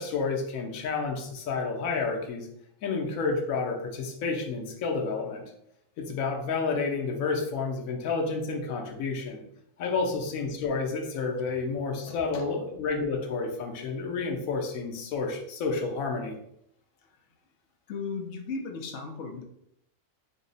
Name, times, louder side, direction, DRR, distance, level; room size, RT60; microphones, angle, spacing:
voice 1, 0.0-2.5 2.8-5.4 6.0-9.4 9.8-16.4, left 4 dB, 85° left, 2 dB, 1.1 m, -30 dB
voice 2, 12.1-12.5 17.1-17.2 17.9-19.4, left 4 dB, 65° left, 3 dB, 0.8 m, -37 dB
3.6 x 2.0 x 3.9 m, 0.75 s
omnidirectional pair, 1.4 m